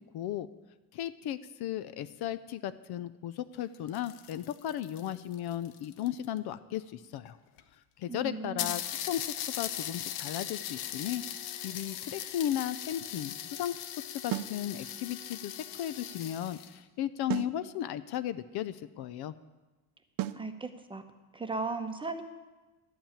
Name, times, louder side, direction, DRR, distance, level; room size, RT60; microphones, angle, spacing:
voice 1, 0.1-0.5 0.9-7.4 8.0-9.2 9.6-11.2 11.6-13.8 14.1-19.3, left 11 dB, 50° left, 14 dB, 0.6 m, -35 dB
sound 1, 3.6-6.4 7.3-7.4 7.6-7.7 8.0-8.1 8.6-16.8, left 10 dB, 75° left, 1.3 m, -39 dB
voice 2, 8.1-8.7 20.3-21.0 21.3-22.2, right 3 dB, 10° right, 7 dB, 0.9 m, -37 dB
sound 2, 14.3-14.6 17.3-17.6 20.2-20.5, right 14 dB, 45° right, 0.5 m, -33 dB
12.0 x 8.6 x 8.8 m, 1.2 s
cardioid pair, 135°, 49 cm